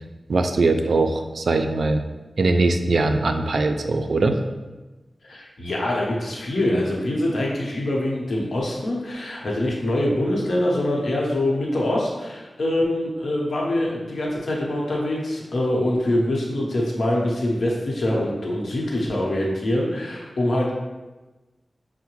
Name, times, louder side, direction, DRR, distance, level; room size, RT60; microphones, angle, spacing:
voice 1, 0.3-2.0 2.4-4.4, right 3 dB, 75° right, 6 dB, 0.3 m, -21 dB
voice 2, 5.2-20.7, left 1 dB, 75° left, -3 dB, 0.8 m, -24 dB
5.5 x 2.1 x 3.0 m, 1.1 s
wide cardioid pair, 95°, 0 cm